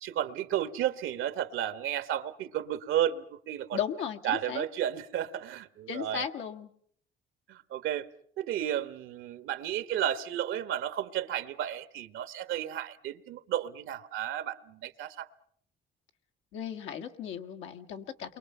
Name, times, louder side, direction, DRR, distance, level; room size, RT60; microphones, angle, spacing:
voice 1, 0.0-3.8 4.2-6.2 7.5-8.1 8.4-15.3, right 11 dB, 80° right, 1.4 m, -33 dB
voice 2, 3.7-4.6 5.9-6.7 16.5-18.4, left 8 dB, 90° left, 1.8 m, -36 dB
29.0 x 23.0 x 5.6 m
cardioid pair, 100°, 20 cm